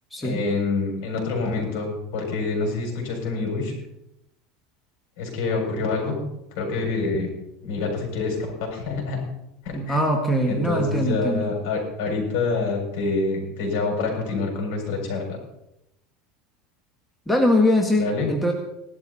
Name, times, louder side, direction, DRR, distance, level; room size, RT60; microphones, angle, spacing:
voice 1, 0.2-3.7 5.2-6.2 6.6-7.3 7.6-9.2 9.6-10.0 10.5-15.4 18.0-18.3, left 3 dB, 70° left, 1 dB, 7.0 m, -26 dB
voice 2, 9.7-11.5 17.3-18.5, left 1 dB, 5° left, 1 dB, 1.9 m, -22 dB
18.0 x 12.5 x 4.3 m, 0.83 s
supercardioid pair, 150°, 0 cm